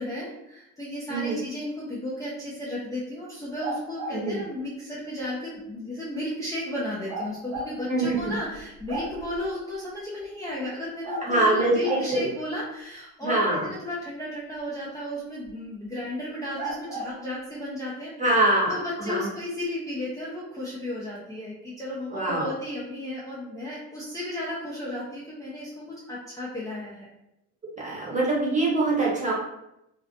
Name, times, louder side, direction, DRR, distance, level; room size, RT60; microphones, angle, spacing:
voice 1, 0.0-18.1 18.7-27.1, left 1 dB, 10° left, -8 dB, 0.6 m, -34 dB
sound 1, 3.6-4.2 7.1-7.7 8.2-8.3 8.6-9.4 11.0-11.3 11.8-12.1 15.5-15.6 16.6-17.1, right 2 dB, 70° right, 0.8 m, -33 dB
voice 2, 7.9-8.4 11.2-12.3 13.2-13.7 18.2-19.3 22.1-22.5 27.8-29.3, right 2 dB, 20° right, -4 dB, 1.0 m, -24 dB
2.4 x 2.3 x 2.4 m, 0.84 s
supercardioid pair, 75°, 37 cm